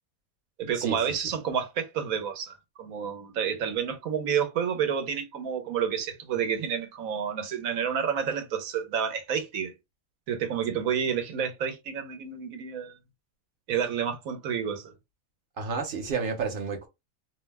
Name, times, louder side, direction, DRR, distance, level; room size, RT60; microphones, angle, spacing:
voice 1, 0.6-9.7 10.3-12.9 13.7-14.9, right 7 dB, 85° right, 1.2 m, -29 dB
voice 2, 15.6-16.9, right 5 dB, 50° right, 0.8 m, -30 dB
2.7 x 2.1 x 3.3 m
omnidirectional pair, 1.4 m